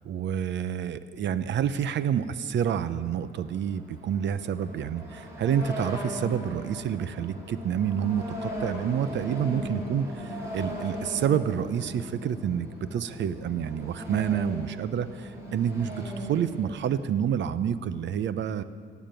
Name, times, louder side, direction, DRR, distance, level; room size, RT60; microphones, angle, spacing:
voice 1, 0.0-18.6, right 8 dB, 65° right, 14 dB, 0.7 m, -28 dB
sound 1, 2.6-17.1, equal, 15° right, 4.3 m, -39 dB
17.5 x 7.4 x 9.0 m, 2.2 s
cardioid pair, 90°, 20 cm